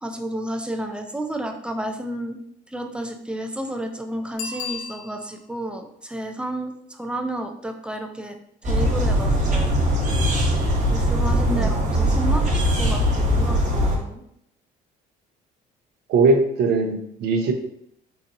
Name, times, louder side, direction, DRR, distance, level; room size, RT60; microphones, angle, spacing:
voice 1, 0.0-2.4 2.7-8.4 8.6-9.8 10.9-14.2, right 1 dB, 5° right, 5 dB, 0.4 m, -31 dB
Bicycle bell, 4.3-5.5 11.0-11.1, left 5 dB, 75° left, 0.7 m, -34 dB
sound 1, 8.6-14.0, equal, 45° right, 0.9 m, -21 dB
voice 2, 16.1-17.5, right 3 dB, 75° right, 5 dB, 0.6 m, -20 dB
3.9 x 2.8 x 2.5 m, 0.73 s
cardioid pair, 110°, 17 cm